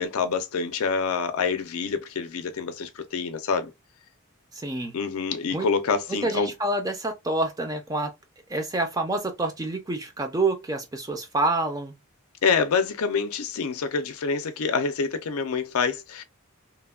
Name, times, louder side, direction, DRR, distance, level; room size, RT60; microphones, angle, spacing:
voice 1, 0.0-3.7 4.9-6.5 12.4-16.2, left 5 dB, 75° left, 0.4 m, -26 dB
voice 2, 4.5-4.9 5.5-5.7 6.2-8.1 8.5-12.0, right 2 dB, 15° right, 0.4 m, -27 dB
2.9 x 2.2 x 2.2 m
head